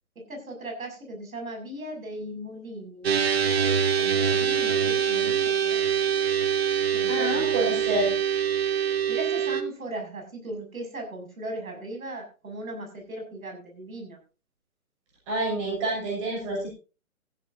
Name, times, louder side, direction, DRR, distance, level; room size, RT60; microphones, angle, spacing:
voice 1, 0.1-3.1 4.0-5.9 6.9-8.0 9.1-14.2, right 1 dB, 70° right, 3 dB, 6.7 m, -38 dB
sound 1, 3.0-9.6, right 8 dB, 45° right, 1.2 m, -24 dB
voice 2, 7.1-8.1 15.3-16.7, right 1 dB, 20° right, -2 dB, 6.3 m, -28 dB
16.5 x 15.0 x 2.7 m, 0.34 s
hypercardioid pair, 170°, 43 cm